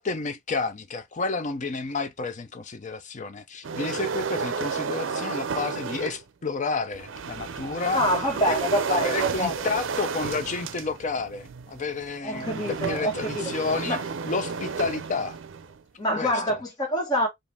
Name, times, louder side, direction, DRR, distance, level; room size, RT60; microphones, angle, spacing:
voice 1, 0.0-8.0 8.5-8.6 8.9-14.0 14.2-15.4 16.1-16.6, left 4 dB, 40° left, 0.5 m, -30 dB
sound 1, 3.6-6.2 6.9-15.8, right 5 dB, 70° right, 0.5 m, -32 dB
voice 2, 7.9-9.6 12.2-13.4 13.8-14.0 16.0-17.3, equal, 20° left, 1.6 m, -26 dB
4.9 x 2.5 x 3.3 m
head